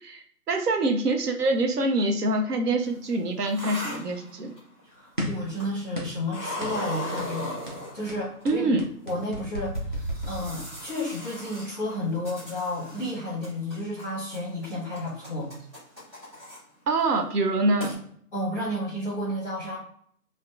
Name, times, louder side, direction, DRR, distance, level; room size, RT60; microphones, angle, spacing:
voice 1, 0.0-4.5 8.4-8.9 16.9-18.0, right 2 dB, 75° right, 4 dB, 0.7 m, -25 dB
sound 1, 2.9-4.8 5.5-6.0 6.3-8.4 9.1-9.2 9.7-13.2 13.4-14.0 14.3-16.6 17.0-17.2 17.5-17.6 17.8-17.9, left 1 dB, 15° right, 1.0 m, -38 dB
voice 2, 4.9-7.6 7.9-8.8 9.1-15.5 18.3-19.8, left 1 dB, ahead, -11 dB, 0.8 m, -32 dB
sound 2, 5.2-5.5 5.9-6.3 6.6-6.8 7.2-7.4 7.7-11.0, equal, 35° right, 0.5 m, -34 dB
2.6 x 2.1 x 2.3 m, 0.63 s
figure-of-eight pair, 150°, 47 cm